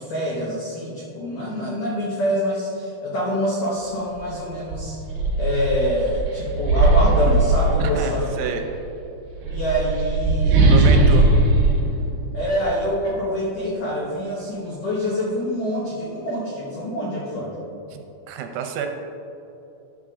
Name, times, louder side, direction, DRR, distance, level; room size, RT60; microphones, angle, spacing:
voice 1, 0.0-5.0 5.4-8.3 9.5-11.1 12.3-17.5, equal, 80° left, -5 dB, 1.9 m, -26 dB
sound 1, 4.1-4.3 4.7-8.3 9.3-12.9, right 2 dB, 65° right, 2.4 m, -19 dB
voice 2, 7.8-8.6 10.7-11.2 17.9-18.9, right 7 dB, 80° right, 4 dB, 3.0 m, -29 dB
11.5 x 6.8 x 3.6 m, 2.8 s
omnidirectional pair, 5.5 m